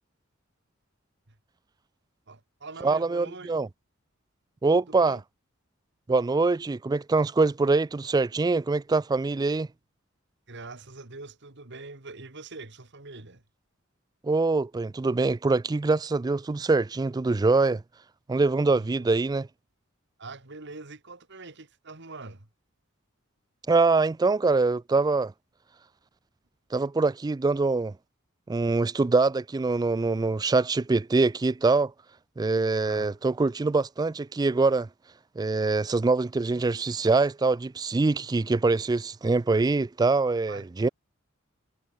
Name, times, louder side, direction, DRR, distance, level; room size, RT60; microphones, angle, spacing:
voice 1, 2.3-3.6 4.7-5.2 10.5-13.4 18.7-18.9 20.2-22.5 32.8-33.2 40.5-40.9, right 3 dB, 60° right, 2.4 m, -43 dB
voice 2, 2.8-3.7 4.6-5.2 6.1-9.7 14.2-17.8 18.3-19.5 23.7-25.3 26.7-27.9 28.5-31.9 32.4-34.9 35.4-40.9, right 3 dB, 20° right, 0.3 m, -24 dB
head